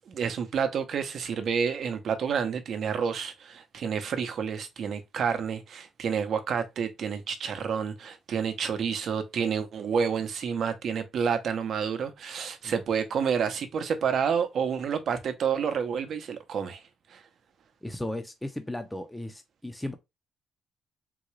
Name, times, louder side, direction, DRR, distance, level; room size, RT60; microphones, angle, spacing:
voice 1, 0.1-16.8 17.1-17.2, right 7 dB, 60° right, 0.7 m, -29 dB
voice 2, 17.8-19.9, left 1 dB, 5° left, 0.5 m, -35 dB
3.8 x 2.2 x 3.1 m
cardioid pair, 90°, 0 cm